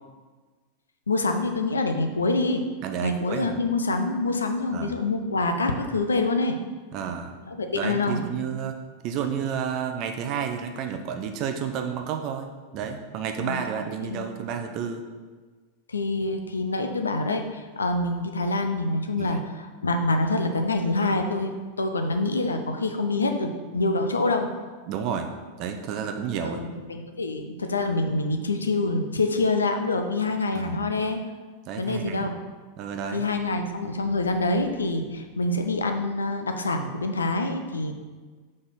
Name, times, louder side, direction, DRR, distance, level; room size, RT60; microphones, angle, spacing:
voice 1, 1.1-2.6 3.0-6.6 7.6-8.2 13.4-13.6 14.0-14.3 15.9-24.5 26.4-31.2 31.8-32.4 33.1-37.9, left 2 dB, 75° left, 5 dB, 0.6 m, -26 dB
voice 2, 2.8-3.6 4.7-5.0 6.9-7.4 7.7-8.8 9.0-15.0 19.2-19.4 24.9-25.3 25.6-26.6 30.5-30.9 31.7-32.3 32.8-33.2, right 7 dB, 40° right, 6 dB, 0.5 m, -31 dB
5.0 x 4.1 x 5.8 m, 1.4 s
figure-of-eight pair, 90°, 0 cm